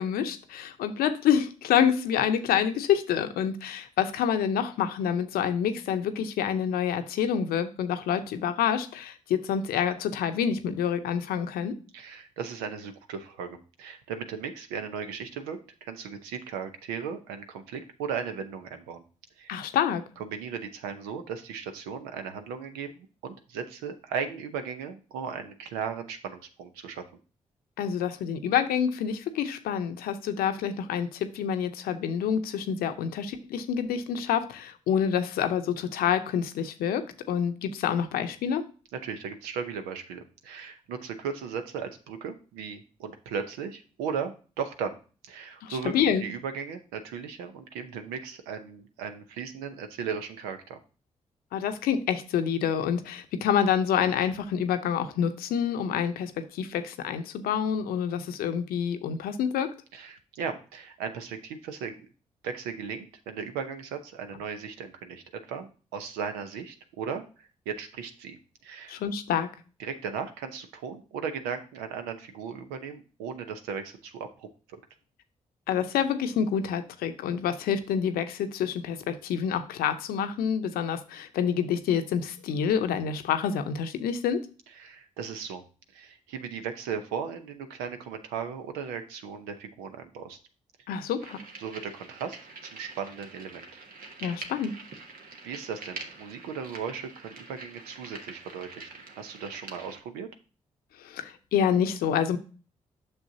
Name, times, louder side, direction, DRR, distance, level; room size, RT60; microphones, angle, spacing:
voice 1, 0.0-11.7 19.5-20.0 27.8-38.6 45.6-46.2 51.5-59.7 68.9-69.5 75.7-84.4 90.9-91.4 94.2-94.7 101.0-102.4, left 8 dB, 80° left, 9 dB, 0.7 m, -27 dB
voice 2, 11.9-19.0 19.4-19.7 20.2-27.0 39.0-45.0 45.2-45.9 46.2-50.8 59.9-62.1 62.4-69.0 69.8-74.8 84.8-85.6 85.9-90.4 91.6-93.7 95.4-98.9 99.2-100.3, right 6 dB, 90° right, 8 dB, 0.7 m, -37 dB
sound 1, 91.2-100.0, right 4 dB, 70° right, 1.2 m, -45 dB
8.9 x 6.1 x 2.7 m, 0.37 s
hypercardioid pair, 40°, 15 cm